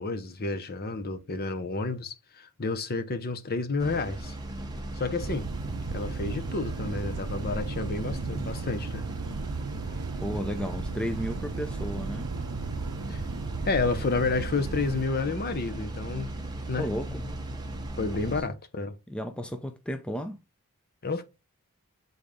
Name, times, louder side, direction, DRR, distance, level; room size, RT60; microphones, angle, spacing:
voice 1, 0.0-4.4 5.0-5.5 5.9-9.0 13.1-13.2 13.6-16.3 16.7-16.9 18.0-19.0 21.0-21.2, left 3 dB, 45° left, 0.8 m, -30 dB
sound 1, 3.8-18.4, right 1 dB, 20° right, 1.1 m, -37 dB
sound 2, 5.2-15.1, right 4 dB, 85° right, 0.5 m, -36 dB
voice 2, 10.2-12.3 16.8-17.2 18.2-18.4 19.1-20.4, equal, 5° left, 0.4 m, -33 dB
6.8 x 4.0 x 3.6 m
head